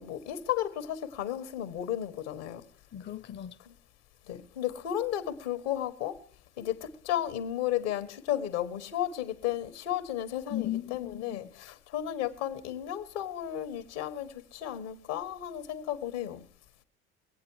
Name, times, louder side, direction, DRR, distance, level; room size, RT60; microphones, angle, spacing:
voice 1, 0.0-2.6 3.6-3.7 4.3-6.2 6.6-16.5, left 11 dB, 85° left, 1.5 m, -34 dB
voice 2, 2.9-3.6 10.5-11.5, left 12 dB, 30° left, 0.6 m, -36 dB
23.5 x 8.6 x 4.7 m
hypercardioid pair, 75°, 34 cm